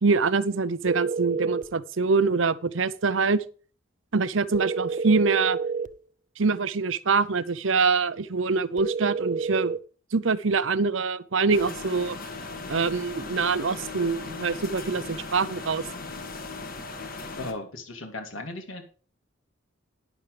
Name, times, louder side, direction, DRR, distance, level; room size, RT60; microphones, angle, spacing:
voice 1, 0.0-3.4 4.1-5.6 6.4-9.8 10.1-12.2 12.7-15.8, right 4 dB, 75° right, 0.7 m, -24 dB
sound 1, 0.9-1.7 4.5-6.0 8.8-9.8, right 5 dB, 40° right, 0.6 m, -29 dB
sound 2, 11.5-17.5, left 3 dB, 45° left, 2.0 m, -38 dB
voice 2, 17.4-18.8, left 2 dB, 85° left, 2.9 m, -36 dB
12.0 x 10.5 x 3.3 m
head